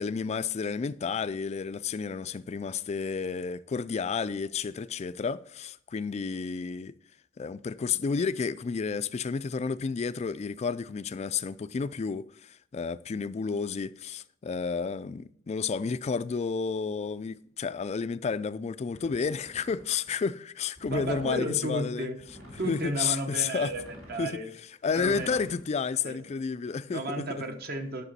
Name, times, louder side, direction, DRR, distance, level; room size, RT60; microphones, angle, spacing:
voice 1, 0.0-6.9 7.4-22.1 22.6-23.7 24.2-24.4 24.8-27.4, left 5 dB, 35° left, 0.3 m, -31 dB
sound 1, 18.9-20.1 20.7-21.5 22.2-23.0 23.6-24.3 24.9-25.6, equal, 75° right, 3.6 m, -49 dB
voice 2, 20.8-22.2 22.6-24.5 25.0-25.4 26.0-26.2 26.9-28.0, right 1 dB, 50° right, 1.1 m, -33 dB
11.0 x 5.9 x 4.1 m
head